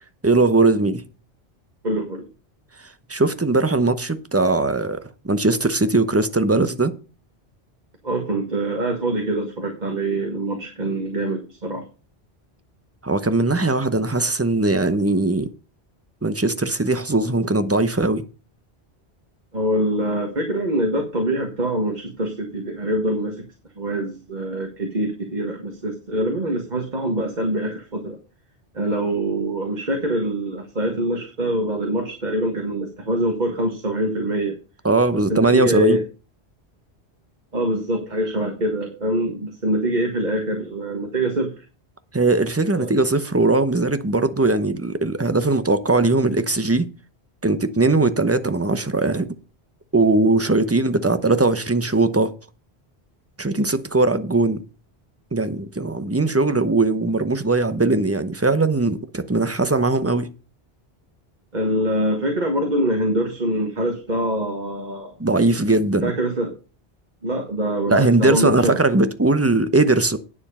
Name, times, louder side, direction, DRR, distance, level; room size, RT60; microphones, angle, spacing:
voice 1, 0.2-1.0 3.1-5.0 5.2-6.9 13.0-15.5 16.2-18.2 34.8-36.0 42.1-46.9 47.4-49.3 49.9-52.3 53.4-54.6 55.3-60.3 65.2-66.1 67.9-70.2, right 2 dB, 15° right, 0.8 m, -19 dB
voice 2, 1.8-2.2 8.0-11.9 19.5-23.5 23.8-28.2 28.7-34.6 35.1-36.0 37.5-41.5 42.7-42.9 61.5-65.1 66.0-66.5 67.2-68.8, right 1 dB, 45° right, 1.8 m, -24 dB
9.6 x 7.3 x 5.5 m
omnidirectional pair, 1.1 m